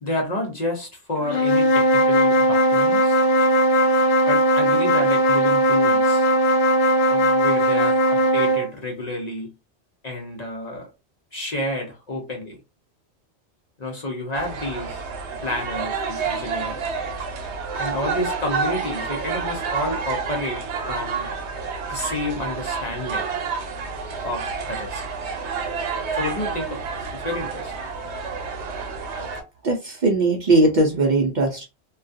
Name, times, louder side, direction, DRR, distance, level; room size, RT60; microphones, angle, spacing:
voice 1, 0.0-3.2 4.3-6.3 7.1-9.5 10.0-10.9 11.3-12.6 13.8-15.0 15.4-16.9 17.8-21.3 21.9-23.3 24.2-25.0 26.1-27.7, left 1 dB, 45° left, 0.7 m, -30 dB
sound 1, 1.3-8.7, right 1 dB, 80° left, 0.8 m, -18 dB
sound 2, 14.3-29.4, right 5 dB, 90° right, 0.9 m, -29 dB
voice 2, 29.6-31.6, right 2 dB, 55° right, 0.6 m, -19 dB
2.3 x 2.2 x 2.5 m
omnidirectional pair, 1.1 m